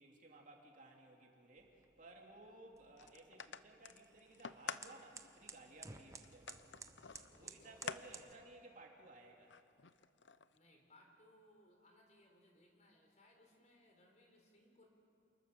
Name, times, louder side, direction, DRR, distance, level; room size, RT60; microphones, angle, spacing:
voice 1, 0.0-6.6 7.4-9.5, right 2 dB, 45° right, 0 dB, 3.1 m, -59 dB
sound 1, 1.6-8.3, right 4 dB, 15° right, 0.9 m, -57 dB
sound 2, 3.0-4.9 5.4-5.5 6.2-8.0 8.4-8.5 9.5-10.6, left 6 dB, 80° left, 0.8 m, -49 dB
voice 2, 7.2-7.8 10.5-14.9, left 1 dB, 40° left, 2 dB, 4.1 m, -67 dB
29.0 x 20.5 x 6.9 m, 2.8 s
head